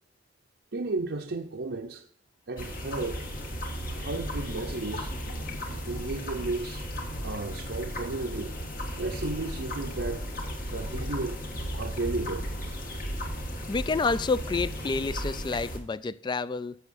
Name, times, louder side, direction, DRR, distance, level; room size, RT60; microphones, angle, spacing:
voice 1, 0.7-2.0 2.5-3.3 4.0-5.1 5.9-6.8 7.2-8.6 9.0-10.2 10.6-11.4 11.8-12.5, right 3 dB, 70° right, 0.7 m, -33 dB
sound 1, 2.6-15.8, equal, 55° left, 1.7 m, -35 dB
voice 2, 13.7-16.8, left 4 dB, 25° left, 0.3 m, -29 dB
11.5 x 7.3 x 2.6 m
head